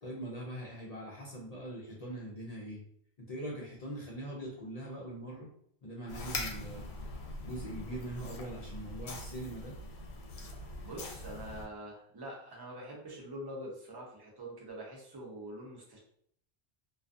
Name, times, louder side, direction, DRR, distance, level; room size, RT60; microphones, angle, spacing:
voice 1, 0.0-2.8 3.2-5.5 5.8-6.9 7.4-9.8, right 1 dB, 55° left, -3 dB, 0.4 m, -42 dB
sound 1, 6.1-11.7, left 2 dB, 80° left, 0.8 m, -42 dB
voice 2, 10.8-16.0, right 1 dB, 30° right, -2 dB, 0.6 m, -45 dB
2.3 x 2.3 x 2.5 m, 0.66 s
omnidirectional pair, 1.1 m